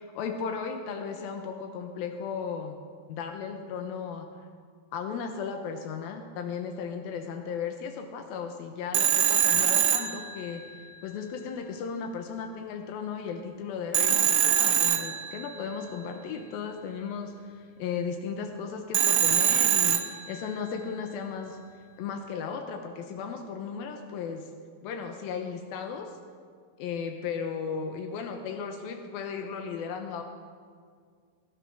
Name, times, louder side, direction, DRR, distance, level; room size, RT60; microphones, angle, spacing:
voice 1, 0.0-2.8 3.1-4.3 4.9-10.6 11.0-21.6 22.0-24.5 24.8-26.2 26.8-30.2, left 6 dB, 80° left, 4 dB, 2.1 m, -35 dB
Telephone, 8.9-10.9 13.9-15.7 18.9-20.6, right 10 dB, 75° right, 2.6 m, -24 dB
20.0 x 11.5 x 6.1 m, 2.1 s
omnidirectional pair, 5.4 m